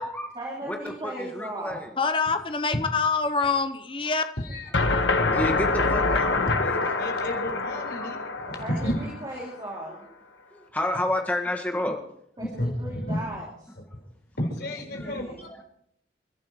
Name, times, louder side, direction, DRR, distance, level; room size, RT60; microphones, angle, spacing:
voice 1, 0.3-1.9 8.5-10.1 12.4-13.7 15.0-15.5, right 1 dB, 25° right, -3 dB, 2.6 m, -37 dB
voice 2, 1.0-1.9 5.3-6.8 8.0-8.1 8.4-8.5 10.5-12.0 14.9-15.1, left 1 dB, 10° left, 3 dB, 1.6 m, -30 dB
voice 3, 2.0-4.2, left 4 dB, 30° left, 8 dB, 0.7 m, -25 dB
voice 4, 4.4-5.0 6.3-9.0 12.4-13.2 14.4-15.5, left 1 dB, 65° left, 2 dB, 4.1 m, -32 dB
sound 1, 4.7-9.7, left 3 dB, 90° left, 1.3 m, -26 dB
28.5 x 12.0 x 3.1 m, 0.72 s
head